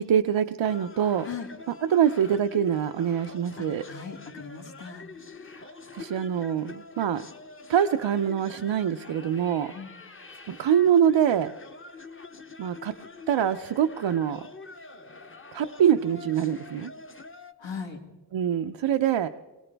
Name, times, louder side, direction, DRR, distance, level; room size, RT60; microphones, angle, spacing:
voice 1, 0.0-1.3 1.8-3.8 5.6-5.7 5.9-7.3 7.7-9.7 10.5-11.5 12.6-12.9 13.3-14.5 15.5-16.9 18.3-19.3, right 9 dB, 90° right, 7 dB, 0.7 m, -24 dB
sound 1, 0.7-17.5, left 3 dB, 30° left, 0.8 m, -45 dB
voice 2, 3.6-5.1 9.7-9.9 17.6-18.0, left 6 dB, 85° left, 2 dB, 2.3 m, -38 dB
23.0 x 18.0 x 3.4 m, 1.2 s
wide cardioid pair, 140°, 44 cm